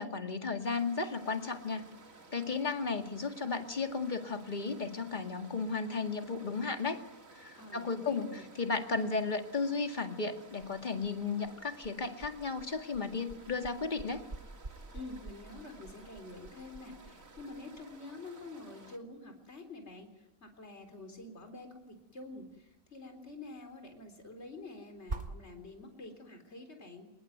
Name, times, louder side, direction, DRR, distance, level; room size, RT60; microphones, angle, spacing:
voice 1, 0.0-1.8 2.3-7.0 7.4-14.2, left 4 dB, 35° left, 5 dB, 2.2 m, -34 dB
sound 1, 0.6-19.0, right 3 dB, 70° right, 3.0 m, -56 dB
voice 2, 7.6-8.4 14.9-27.1, left 2 dB, 50° left, 5 dB, 4.2 m, -48 dB
sound 2, 10.5-26.2, right 2 dB, 40° right, 2.5 m, -49 dB
26.0 x 22.0 x 9.4 m, 0.85 s
omnidirectional pair, 1.5 m